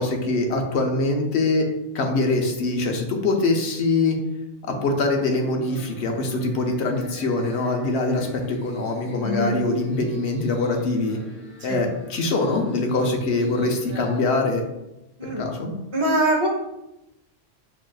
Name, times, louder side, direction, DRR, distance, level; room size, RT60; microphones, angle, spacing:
voice 1, 0.0-1.7 1.9-4.2 4.8-11.2 11.6-14.6 15.2-15.7, left 2 dB, 65° left, 2 dB, 0.9 m, -23 dB
sound 1, 5.1-14.3, equal, 15° left, 0.9 m, -43 dB
voice 2, 9.2-9.5 11.7-11.8 15.2-15.4 15.9-16.5, right 1 dB, 30° right, -1 dB, 0.6 m, -22 dB
5.7 x 2.5 x 2.3 m, 0.90 s
omnidirectional pair, 1.3 m